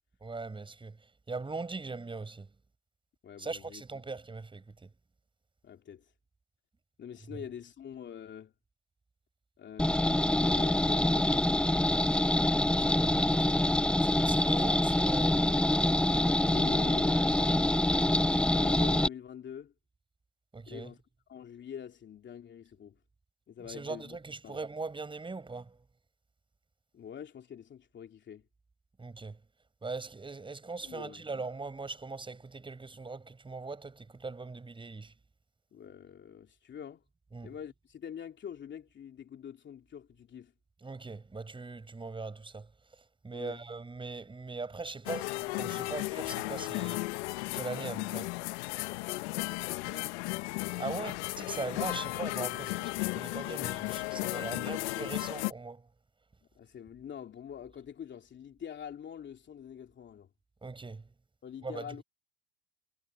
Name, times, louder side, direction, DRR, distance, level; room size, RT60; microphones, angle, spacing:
voice 1, 0.2-1.0 1.3-2.5 3.4-4.9 12.8-13.6 14.0-15.4 20.5-20.9 23.7-25.8 29.0-29.4 29.8-35.1 37.3-37.5 40.8-42.7 43.2-47.0 47.5-48.3 50.8-55.8 60.6-61.0 61.6-61.9, right 3 dB, 15° right, 6.5 m, -40 dB
voice 2, 3.2-3.8 5.6-6.1 7.0-8.5 9.6-12.4 14.5-14.7 15.9-17.8 18.0-19.7 20.7-21.0 21.3-23.0 23.5-24.2 24.4-24.6 26.9-28.5 30.8-31.3 35.7-37.0 37.4-40.5 43.3-43.6 49.4-50.2 56.5-60.3 61.4-62.0, left 8 dB, 30° left, 3.1 m, -45 dB
sound 1, 9.8-19.1, left 1 dB, 5° left, 0.7 m, -26 dB
sound 2, 45.1-55.5, left 23 dB, 70° left, 1.4 m, -35 dB
hypercardioid pair, 100°, 36 cm